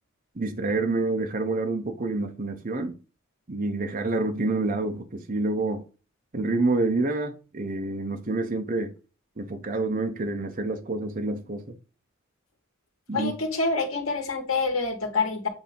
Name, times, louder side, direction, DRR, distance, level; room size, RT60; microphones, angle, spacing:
voice 1, 0.4-3.0 3.5-5.8 6.3-8.9 9.4-11.8 13.1-13.3, right 2 dB, 40° right, 0.8 m, -28 dB
voice 2, 13.1-15.5, left 3 dB, 80° left, 1.8 m, -26 dB
8.0 x 2.8 x 5.2 m
head